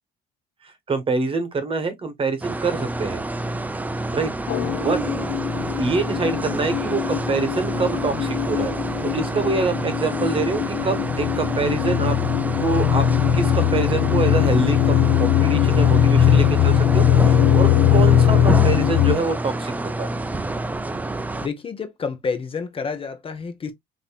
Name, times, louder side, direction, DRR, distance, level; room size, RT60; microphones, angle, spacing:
voice 1, 0.6-3.2 4.1-4.3 4.8-5.0 5.8-8.7 9.0-12.2 12.6-13.0 13.3-20.1, right 4 dB, 30° right, 1.2 m, -25 dB
sound 1, 2.4-21.5, right 2 dB, 10° right, 0.4 m, -28 dB
sound 2, 4.5-19.2, left 10 dB, 70° left, 0.5 m, -20 dB
voice 2, 21.4-23.7, left 5 dB, 35° left, 0.8 m, -29 dB
5.2 x 2.7 x 2.3 m
cardioid pair, 110°, 17 cm